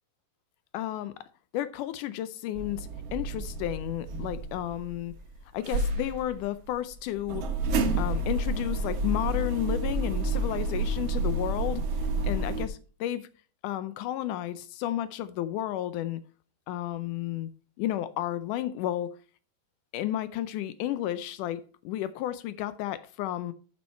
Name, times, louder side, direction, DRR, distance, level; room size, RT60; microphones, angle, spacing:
voice 1, 0.7-1.1 1.5-5.1 5.5-7.4 8.0-11.9 12.2-13.3 13.6-16.2 16.7-17.5 17.8-19.1 19.9-23.5, left 13 dB, 80° left, 1.8 m, -32 dB
sound 1, 2.6-5.3 5.6-12.7, right 2 dB, 60° right, 1.7 m, -30 dB
8.7 x 7.4 x 4.3 m
omnidirectional pair, 4.2 m